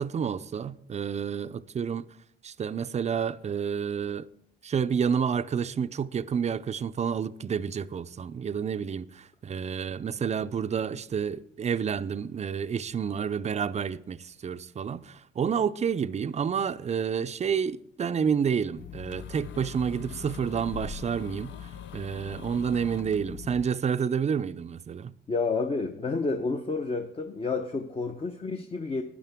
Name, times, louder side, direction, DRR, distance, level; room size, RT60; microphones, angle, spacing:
voice 1, 0.0-2.1 2.4-4.3 4.6-25.1, right 7 dB, 35° right, 0.5 m, -29 dB
sound 1, 18.8-23.6, left 8 dB, 65° left, 0.6 m, -41 dB
voice 2, 25.3-29.0, left 4 dB, 30° left, 0.8 m, -30 dB
12.5 x 9.7 x 3.6 m
cardioid pair, 90°, 20 cm